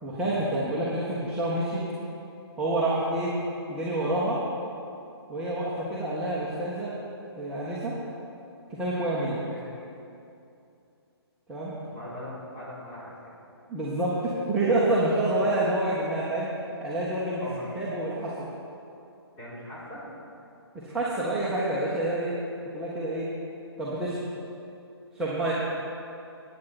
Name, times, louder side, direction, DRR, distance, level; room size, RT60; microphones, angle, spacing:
voice 1, 0.0-1.8 2.6-3.3 3.7-4.4 5.3-6.9 7.3-7.9 8.7-9.4 11.5-11.7 13.7-16.5 16.8-18.5 20.8-22.3 22.7-23.2 23.8-24.3 25.1-25.5, right 1 dB, 5° right, -10 dB, 1.7 m, -28 dB
voice 2, 9.5-9.9 11.8-13.3 17.4-17.7 19.4-20.1, left 1 dB, 15° left, -8 dB, 4.1 m, -41 dB
22.0 x 9.4 x 4.5 m, 2.7 s
figure-of-eight pair, 135°, 14 cm